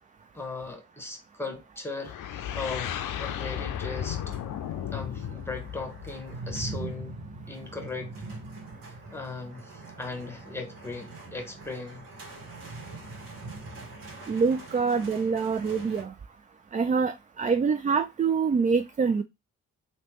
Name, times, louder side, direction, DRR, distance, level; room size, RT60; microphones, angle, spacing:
voice 1, 0.3-2.9 3.2-4.2 4.9-7.2 7.5-8.1 9.1-12.0, left 3 dB, 5° left, 1.2 m, -37 dB
sound 1, 2.0-6.9, left 10 dB, 60° left, 0.6 m, -35 dB
sound 2, 3.7-16.0, right 3 dB, 65° right, 1.5 m, -43 dB
voice 2, 14.3-16.1 16.7-19.2, right 5 dB, 20° right, 0.4 m, -25 dB
3.3 x 2.6 x 3.0 m
hypercardioid pair, 45°, 37 cm